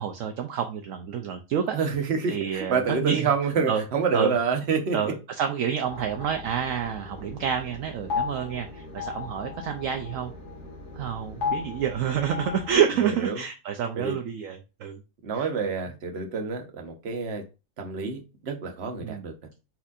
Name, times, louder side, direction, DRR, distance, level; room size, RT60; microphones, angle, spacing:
voice 1, 0.0-1.8 2.3-3.3 3.7-3.8 4.1-4.3 4.9-10.3 11.0-15.0 15.3-15.5 19.0-19.3, right 8 dB, 70° right, 0.8 m, -28 dB
voice 2, 1.7-5.1 13.0-13.4 14.0-14.2 15.2-17.4 17.8-19.3, right 5 dB, 45° right, 1.1 m, -27 dB
sound 1, 5.8-12.8, left 5 dB, 90° left, 1.9 m, -36 dB
4.4 x 4.3 x 2.4 m
omnidirectional pair, 1.7 m